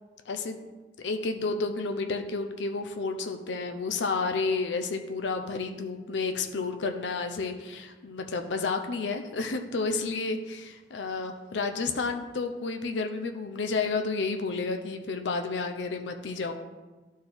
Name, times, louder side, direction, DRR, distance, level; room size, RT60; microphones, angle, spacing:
voice 1, 0.3-0.6 1.0-16.5, left 4 dB, 80° left, 6 dB, 0.5 m, -31 dB
11.5 x 4.3 x 3.5 m, 1.2 s
head